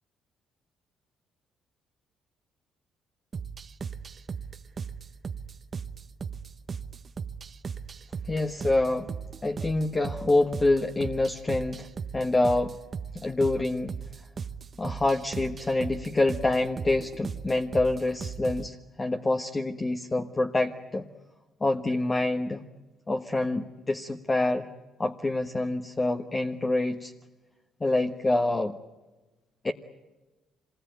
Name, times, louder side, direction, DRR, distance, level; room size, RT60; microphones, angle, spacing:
sound 1, 3.3-18.7, right 6 dB, 40° right, 1.0 m, -38 dB
voice 1, 8.2-9.1 9.4-11.9 12.1-12.7 13.1-13.9 14.8-21.1 21.6-22.6 23.1-24.7 25.0-27.1 27.8-28.8 29.6-29.7, left 2 dB, 25° left, 4 dB, 1.3 m, -26 dB
26.0 x 20.5 x 9.3 m, 1.2 s
cardioid pair, 85°, 0 cm